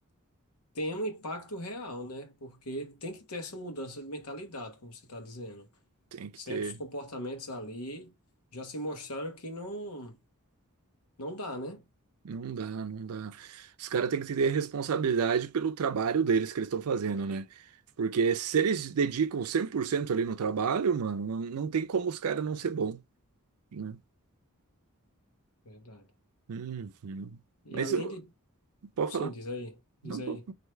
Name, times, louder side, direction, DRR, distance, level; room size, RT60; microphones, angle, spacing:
voice 1, 0.7-5.7 6.4-8.1 8.5-10.2 11.2-11.8 25.6-26.1 27.6-28.3 29.1-30.5, equal, 90° left, 1.1 m, -39 dB
voice 2, 6.1-6.7 12.2-17.4 18.0-23.0 23.7-24.0 26.5-27.3 27.7-28.1 29.0-29.3 30.1-30.5, right 6 dB, 75° right, 0.4 m, -30 dB
3.2 x 2.7 x 4.4 m
head